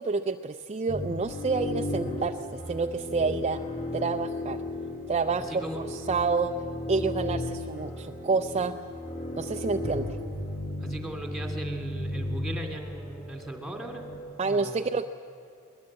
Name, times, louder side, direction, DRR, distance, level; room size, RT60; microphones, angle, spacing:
voice 1, 0.0-3.6 3.9-4.6 5.1-5.6 5.9-6.5 6.9-8.7 9.4-10.2 14.4-15.1, right 4 dB, 30° right, 7 dB, 0.5 m, -28 dB
sound 1, 0.9-14.2, left 1 dB, 25° left, 5.0 m, -35 dB
voice 2, 5.5-5.8 10.8-14.1 14.4-14.9, right 1 dB, ahead, 3 dB, 2.6 m, -37 dB
22.0 x 19.5 x 8.7 m, 2.4 s
head